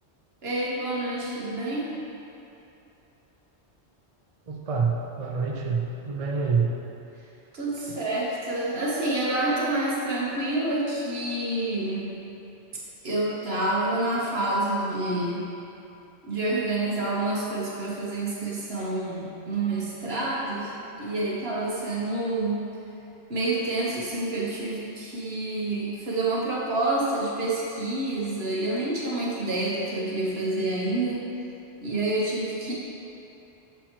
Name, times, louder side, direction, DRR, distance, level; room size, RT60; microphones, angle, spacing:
voice 1, 0.4-1.9 7.5-12.1 13.0-15.4 16.3-22.7 23.3-31.2 31.8-32.7, right 2 dB, 65° right, -5 dB, 1.4 m, -28 dB
voice 2, 4.5-6.8 7.9-8.0, right 5 dB, 45° right, -1 dB, 0.5 m, -27 dB
7.0 x 5.6 x 3.0 m, 2.9 s
omnidirectional pair, 1.2 m